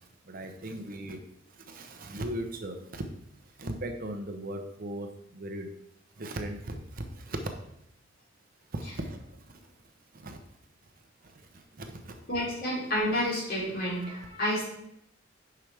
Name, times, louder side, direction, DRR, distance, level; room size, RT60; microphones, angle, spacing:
voice 1, 0.3-1.2 1.7-3.0 3.6-5.1 5.3-5.7 6.2-7.4 8.7-9.2 10.2-10.4 11.8-12.2, right 1 dB, 45° right, 5 dB, 0.8 m, -37 dB
voice 2, 12.3-14.6, equal, 50° left, -5 dB, 3.2 m, -29 dB
9.6 x 5.8 x 3.4 m, 0.77 s
head